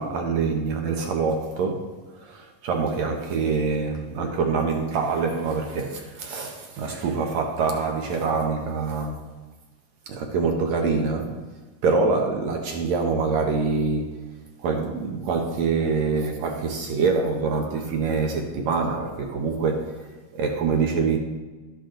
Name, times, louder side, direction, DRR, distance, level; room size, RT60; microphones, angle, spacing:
voice 1, 0.0-9.3 10.1-11.4 11.8-14.3 14.6-20.1 20.3-21.2, right 4 dB, 70° right, 2 dB, 1.7 m, -25 dB
13.0 x 10.5 x 3.8 m, 1.3 s
omnidirectional pair, 4.5 m